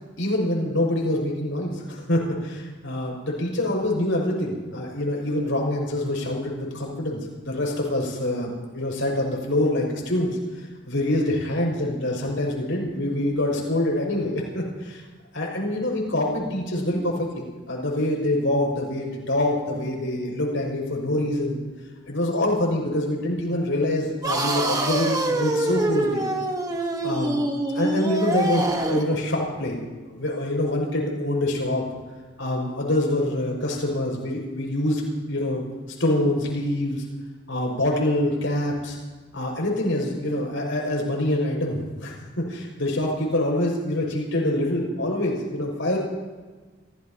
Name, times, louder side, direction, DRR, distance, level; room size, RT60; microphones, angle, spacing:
voice 1, 0.2-15.0 15.3-21.6 22.1-26.2 27.0-27.4 27.7-29.8 30.1-31.8 32.4-35.0 35.3-35.7 36.0-37.0 37.5-39.0 39.3-46.0, left 1 dB, 80° left, -1 dB, 6.0 m, -25 dB
sound 1, 24.2-29.2, right 1 dB, 20° right, 1.3 m, -25 dB
28.5 x 16.5 x 2.9 m, 1.3 s
head